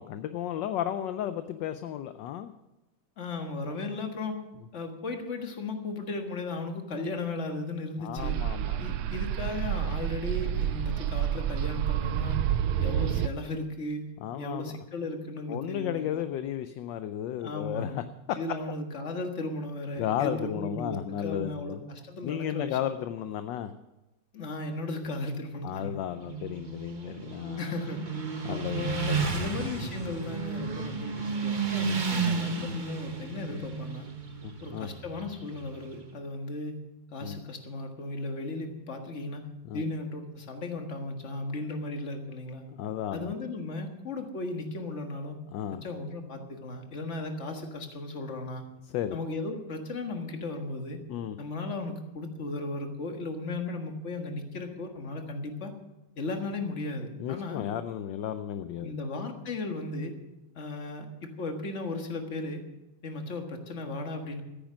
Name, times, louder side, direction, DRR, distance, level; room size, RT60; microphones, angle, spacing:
voice 1, 0.0-2.5 8.0-8.9 14.2-14.8 15.5-18.0 20.0-21.8 22.2-23.7 25.6-27.6 28.4-29.5 34.4-34.9 37.2-37.4 39.6-39.8 42.7-43.3 45.5-45.8 48.8-49.2 51.1-51.4 57.2-58.9, left 10 dB, 70° left, 10 dB, 1.1 m, -34 dB
voice 2, 3.2-4.4 4.7-8.4 8.8-12.4 12.8-14.1 14.4-16.3 17.4-18.0 18.4-22.8 24.3-26.0 27.6-28.0 28.5-34.1 34.6-36.8 37.1-39.5 39.7-42.6 43.1-45.4 45.8-48.6 49.1-51.0 51.4-55.7 56.2-57.6 58.8-60.1 60.6-62.6 63.0-64.4, left 2 dB, 35° left, 4 dB, 1.7 m, -36 dB
sound 1, 8.2-13.3, right 11 dB, 90° right, 1.5 m, -29 dB
Motorcycle, 26.2-35.9, right 5 dB, 30° right, 1.0 m, -33 dB
14.0 x 10.5 x 6.3 m, 0.97 s
omnidirectional pair, 2.3 m